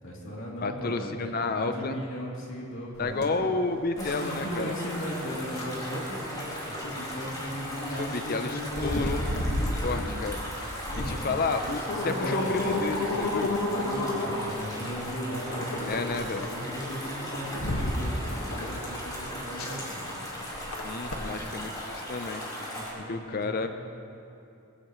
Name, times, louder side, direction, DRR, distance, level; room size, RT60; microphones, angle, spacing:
voice 1, 0.0-3.4 4.0-10.2 10.9-12.6 13.6-20.3 21.2-21.6 22.5-23.7, equal, 60° left, -4 dB, 2.9 m, -37 dB
voice 2, 0.6-2.0 3.0-4.8 8.0-9.2 9.8-10.4 11.1-13.6 15.9-16.5 20.8-22.7 23.1-23.7, left 3 dB, 45° left, 8 dB, 0.6 m, -31 dB
sound 1, 3.0-21.8, left 1 dB, 80° left, 1.7 m, -34 dB
sound 2, 4.0-22.9, equal, 20° left, 4.0 m, -38 dB
21.5 x 16.0 x 3.1 m, 2.8 s
head